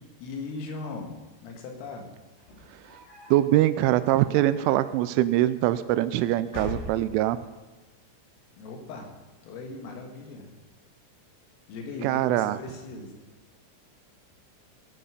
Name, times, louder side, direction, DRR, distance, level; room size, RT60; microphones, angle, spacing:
voice 1, 0.2-2.1 8.6-9.1 9.4-10.5 11.7-13.2, left 3 dB, 85° left, 3 dB, 4.5 m, -38 dB
sound 1, 2.4-3.5 4.0-4.7 5.6-6.1 6.4-7.4, left 2 dB, 65° left, 7.0 m, -40 dB
voice 2, 3.3-7.4 12.0-12.6, right 14 dB, 85° right, 13 dB, 2.9 m, -23 dB
17.5 x 9.5 x 5.0 m, 1.2 s
omnidirectional pair, 5.8 m